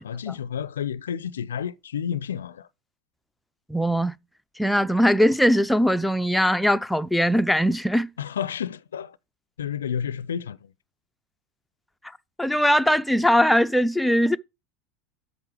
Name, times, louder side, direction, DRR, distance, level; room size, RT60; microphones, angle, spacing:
voice 1, 0.0-2.7 8.2-9.2 9.6-10.7, left 8 dB, 70° left, 0.5 m, -31 dB
voice 2, 3.7-4.2 4.6-8.1 12.4-14.4, equal, 5° left, 0.5 m, -20 dB
8.1 x 7.0 x 4.9 m
figure-of-eight pair, 80°, 0 cm